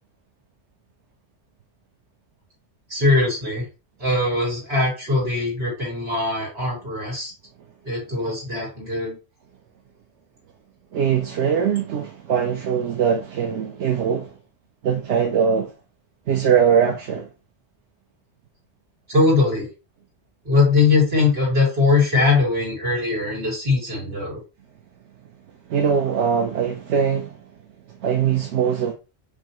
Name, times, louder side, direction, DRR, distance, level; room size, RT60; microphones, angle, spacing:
voice 1, 2.9-3.6 4.0-7.3 7.8-9.2 19.1-19.7 20.4-24.4, left 3 dB, 65° right, 2.8 m, -21 dB
voice 2, 10.9-14.3 14.8-15.7 16.3-17.3 25.7-27.3 28.0-28.9, right 7 dB, 90° right, 1.0 m, -21 dB
5.6 x 3.0 x 2.9 m
omnidirectional pair, 1.1 m